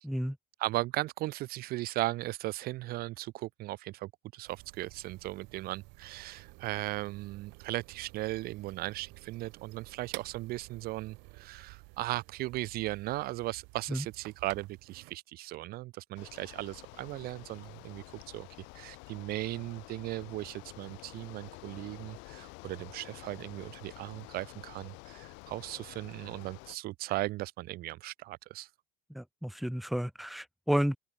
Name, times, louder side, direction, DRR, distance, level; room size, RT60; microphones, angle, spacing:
voice 1, 0.0-0.4 13.9-14.0 29.1-31.0, equal, ahead, 0.9 m, -31 dB
voice 2, 0.6-18.5 18.7-28.7, right 18 dB, 55° right, 0.5 m, -37 dB
sound 1, 4.5-15.2, right 30 dB, 75° right, 5.0 m, -52 dB
Bicycle, 16.2-26.8, left 29 dB, 75° left, 6.0 m, -50 dB
open air
cardioid pair, 125°, 19 cm